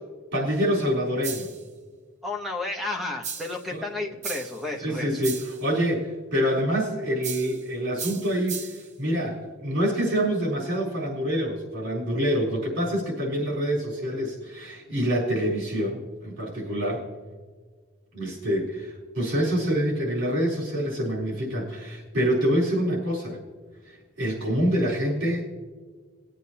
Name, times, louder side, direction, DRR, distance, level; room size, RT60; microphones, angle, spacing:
voice 1, 0.3-1.5 3.7-3.8 4.8-8.7 9.0-17.0 18.1-23.4 24.2-25.4, equal, 55° right, -4 dB, 4.0 m, -26 dB
sound 1, 1.2-1.7 3.2-3.7 4.2-4.7 5.2-5.6 7.2-7.6 8.0-8.9, right 6 dB, 30° right, 0.8 m, -36 dB
voice 2, 2.2-5.2, left 2 dB, ahead, 0 dB, 0.9 m, -32 dB
20.5 x 8.2 x 2.8 m, 1.5 s
head